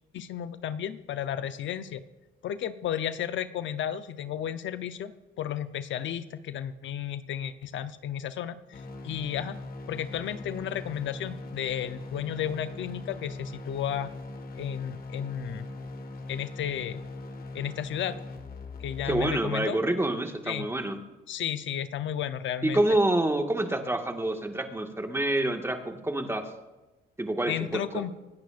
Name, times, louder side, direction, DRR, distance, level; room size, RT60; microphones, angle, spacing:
voice 1, 0.1-2.0 2.4-5.1 5.4-9.6 9.9-14.1 14.5-15.7 16.3-17.0 17.5-18.2 18.8-19.8 20.5-20.7 21.3-22.8 27.5-28.1, left 10 dB, 70° left, 12 dB, 0.8 m, -33 dB
sound 1, 8.7-19.4, left 2 dB, 50° left, 1.7 m, -40 dB
voice 2, 19.0-21.0 22.6-26.5 27.2-28.0, right 1 dB, 10° right, 4 dB, 1.8 m, -27 dB
25.5 x 10.5 x 2.5 m, 1.1 s
cardioid pair, 90°, 20 cm